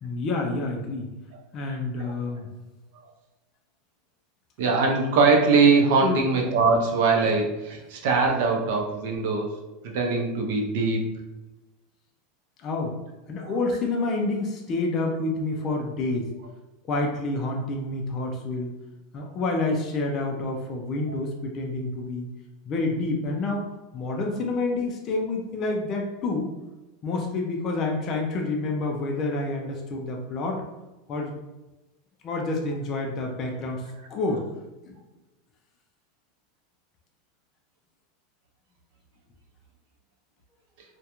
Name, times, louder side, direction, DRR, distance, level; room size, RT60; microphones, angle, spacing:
voice 1, 0.0-1.1 1.5-2.5 6.0-6.2 12.6-13.0 13.3-16.3 16.9-18.7 19.1-22.3 22.7-26.5 27.0-30.6 31.1-31.3 32.2-33.8 34.1-34.4 34.9-35.0, left 2 dB, 30° left, 0 dB, 0.3 m, -28 dB
voice 2, 4.6-9.5 9.8-11.2 13.4-13.5, right 4 dB, 60° right, 1 dB, 0.6 m, -22 dB
2.3 x 2.1 x 2.9 m, 1.0 s
supercardioid pair, 160°, 0 cm